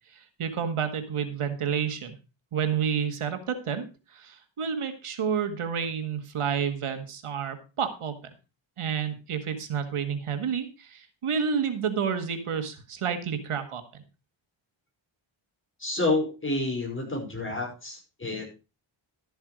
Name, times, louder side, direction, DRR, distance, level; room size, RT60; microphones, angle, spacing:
voice 1, 0.1-2.1 2.5-8.2 8.8-14.0, right 7 dB, 90° right, 8 dB, 1.7 m, -30 dB
voice 2, 15.8-18.5, left 2 dB, 25° left, 1 dB, 5.3 m, -29 dB
12.5 x 7.3 x 4.9 m, 0.31 s
wide cardioid pair, 95°, 49 cm